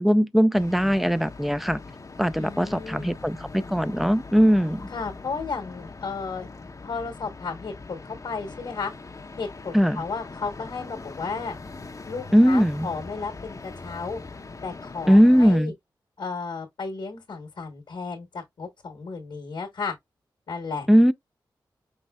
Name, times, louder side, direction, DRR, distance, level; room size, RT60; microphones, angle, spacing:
voice 1, 0.0-1.8 2.2-4.9 9.7-10.0 12.3-12.9 15.1-15.7 20.9-21.1, equal, ahead, 0.4 m, -19 dB
sound 1, 0.5-15.6, left 3 dB, 40° left, 0.7 m, -41 dB
voice 2, 2.4-3.1 4.9-6.5 6.8-8.9 9.4-11.6 12.0-14.2 14.6-15.7 16.2-19.9 20.5-20.9, left 4 dB, 70° left, 1.1 m, -34 dB
5.4 x 3.2 x 2.3 m
cardioid pair, 50°, 8 cm